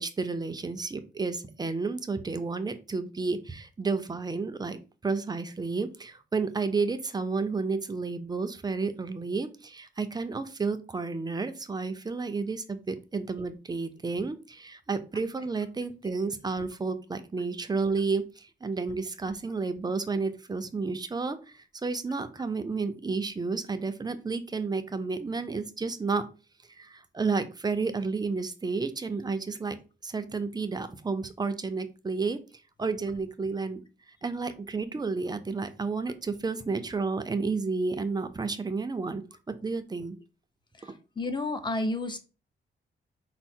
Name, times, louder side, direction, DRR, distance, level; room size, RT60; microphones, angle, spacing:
voice 1, 0.0-26.2 26.8-29.8 30.0-32.4 32.8-33.8 34.2-39.2 39.5-40.2, right 4 dB, 20° right, 9 dB, 0.4 m, -31 dB
voice 2, 40.8-42.2, left 2 dB, 25° left, 7 dB, 0.7 m, -31 dB
4.5 x 2.0 x 4.3 m, 0.33 s
cardioid pair, 105°, 19 cm